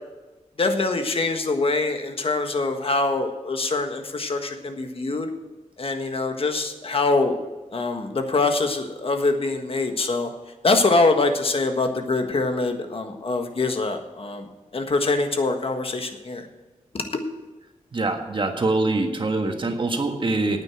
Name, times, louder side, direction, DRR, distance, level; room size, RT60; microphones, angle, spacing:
voice 1, 0.6-5.3 5.8-7.4 7.7-10.3 10.6-16.5 16.9-17.2, left 3 dB, 50° left, 6 dB, 1.5 m, -24 dB
voice 2, 17.9-20.6, right 2 dB, 40° right, 4 dB, 1.6 m, -24 dB
9.3 x 9.1 x 7.6 m, 1.2 s
wide cardioid pair, 100°, 13 cm